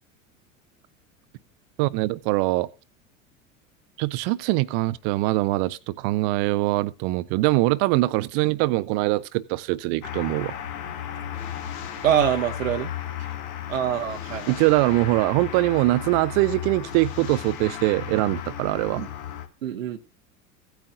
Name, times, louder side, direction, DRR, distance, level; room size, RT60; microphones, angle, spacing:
voice 1, 1.8-2.7 4.0-10.5 14.5-19.0, right 19 dB, 40° right, 0.7 m, -23 dB
sound 1, 10.0-19.5, left 10 dB, 45° left, 1.7 m, -34 dB
voice 2, 12.0-12.9 13.7-14.5 19.0-19.1 19.6-20.0, right 9 dB, 65° right, 1.0 m, -24 dB
16.0 x 9.1 x 2.6 m
figure-of-eight pair, 75°, 42 cm